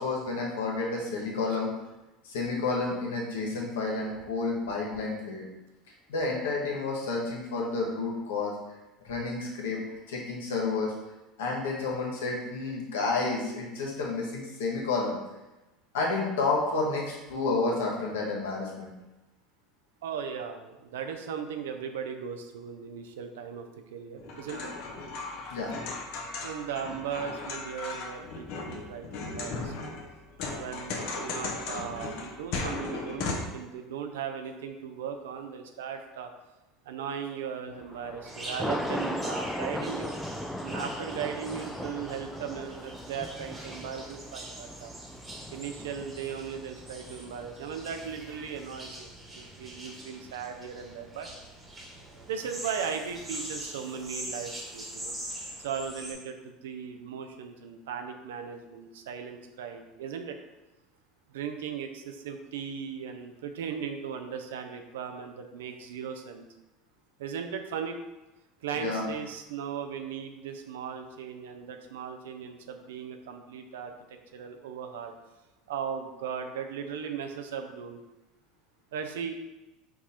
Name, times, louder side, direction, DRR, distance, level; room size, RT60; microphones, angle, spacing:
voice 1, 0.0-1.7 2.2-5.5 6.1-8.5 9.0-9.8 10.1-10.9 11.4-15.2 15.9-18.9 25.5-25.7 68.7-69.1, left 3 dB, 85° left, -2 dB, 1.2 m, -30 dB
voice 2, 20.0-24.7 26.4-29.9 30.5-33.3 33.5-36.3 36.9-40.2 40.6-44.9 45.5-51.3 52.3-55.2 55.6-60.4 61.3-66.5 67.2-68.0 68.6-73.9 74.3-75.1 75.7-78.0 78.9-79.4, right 7 dB, 90° right, 6 dB, 0.4 m, -37 dB
sound 1, 24.2-33.3, left 3 dB, 65° left, 0.8 m, -36 dB
Thunder, 37.8-49.1, equal, 5° left, 0.3 m, -38 dB
sound 2, 38.2-56.1, right 1 dB, 15° right, 1.1 m, -43 dB
4.6 x 2.4 x 4.2 m, 1.0 s
supercardioid pair, 105°, 0 cm